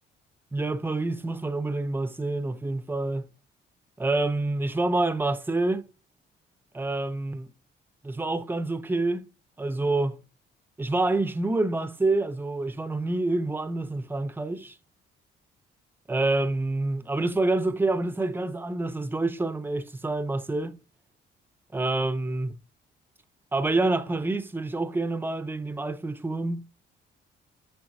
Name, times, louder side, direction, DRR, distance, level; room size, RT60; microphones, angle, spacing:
voice 1, 0.5-3.3 4.0-5.9 6.7-7.5 8.0-9.3 9.6-10.2 10.8-14.8 16.1-20.8 21.7-22.5 23.5-26.6, right 2 dB, 10° right, 0.6 m, -27 dB
8.0 x 4.4 x 2.6 m
cardioid pair, 90°, 20 cm